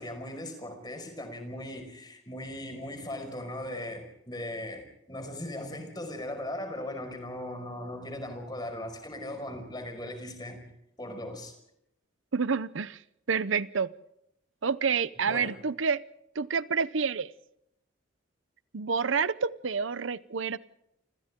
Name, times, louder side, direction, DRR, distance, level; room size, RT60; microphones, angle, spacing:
voice 1, 0.0-10.6 11.0-11.5 15.2-15.5, left 1 dB, 20° left, 5.3 m, -38 dB
voice 2, 12.3-13.0 13.3-13.9 14.6-16.0 16.4-17.3 18.7-20.6, right 5 dB, 80° right, 0.7 m, -28 dB
29.0 x 26.0 x 3.7 m
head